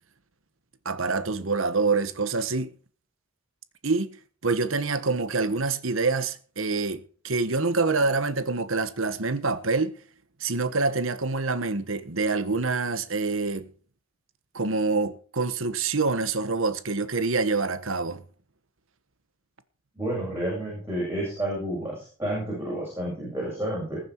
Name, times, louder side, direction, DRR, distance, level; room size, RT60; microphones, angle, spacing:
voice 1, 0.8-2.7 3.8-4.1 4.4-9.9 10.4-13.7 14.5-18.2, right 3 dB, 70° right, 1.3 m, -26 dB
voice 2, 20.0-24.0, right 1 dB, 10° right, 7.6 m, -30 dB
20.5 x 7.3 x 4.6 m
head